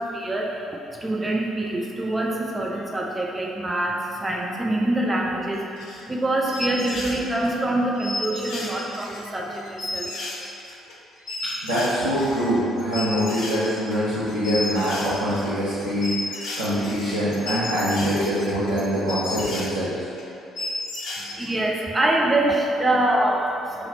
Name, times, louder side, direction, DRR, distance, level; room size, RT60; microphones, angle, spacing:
voice 1, 0.0-10.1 21.2-23.9, right 1 dB, 20° right, -2 dB, 0.5 m, -25 dB
sound 1, 5.5-6.2 6.5-7.5 7.9-19.7 20.2-20.3 20.6-21.5, left 2 dB, 60° left, 0.6 m, -33 dB
voice 2, 11.6-20.1, equal, 85° right, -14 dB, 0.7 m, -24 dB
4.0 x 2.9 x 4.1 m, 2.7 s
figure-of-eight pair, 45°, 0 cm